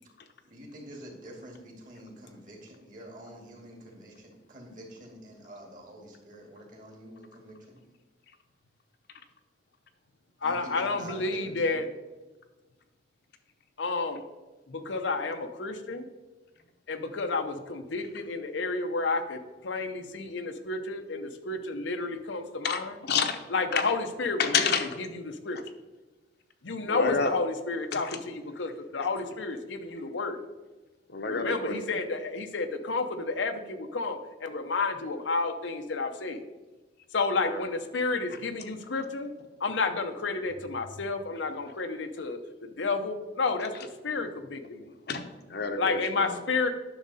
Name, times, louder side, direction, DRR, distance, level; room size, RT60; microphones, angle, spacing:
voice 1, 0.4-7.8 10.4-11.8 27.1-27.2, right 1 dB, 50° right, 1 dB, 2.3 m, -47 dB
voice 2, 10.4-11.9 13.8-14.2 14.7-16.0 16.9-23.0 23.5-25.6 26.6-30.4 31.3-36.4 37.1-39.3 39.6-44.9 45.8-46.7, left 3 dB, 90° left, 7 dB, 0.9 m, -31 dB
voice 3, 22.6-23.4 23.7-23.9 24.4-24.9 26.8-27.3 27.9-28.2 31.1-32.0 37.4-37.6 45.1-46.4, left 5 dB, 60° left, 6 dB, 0.8 m, -29 dB
10.0 x 6.3 x 4.2 m, 1.2 s
head